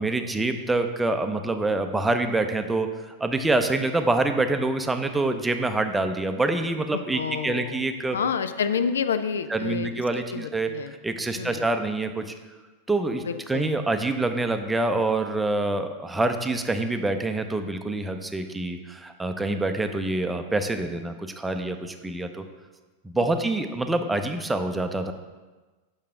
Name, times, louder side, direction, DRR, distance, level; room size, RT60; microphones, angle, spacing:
voice 1, 0.0-2.9 3.2-8.2 9.5-10.7 11.0-12.2 12.9-22.4 23.0-25.1, right 2 dB, 10° right, 6 dB, 0.6 m, -26 dB
voice 2, 7.1-7.8 8.1-9.9 10.3-10.9 11.3-11.7 13.3-13.7, left 6 dB, 65° left, 11 dB, 0.3 m, -28 dB
8.5 x 5.6 x 3.6 m, 1.3 s
figure-of-eight pair, 90°, 0 cm